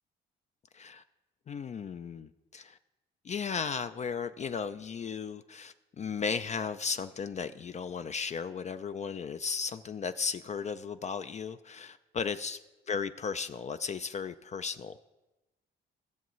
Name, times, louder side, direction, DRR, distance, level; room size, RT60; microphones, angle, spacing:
voice 1, 1.5-2.8 3.2-12.6 12.9-15.0, left 6 dB, 35° left, 11 dB, 0.4 m, -35 dB
16.0 x 6.9 x 3.1 m, 1.1 s
cardioid pair, 90°, 20 cm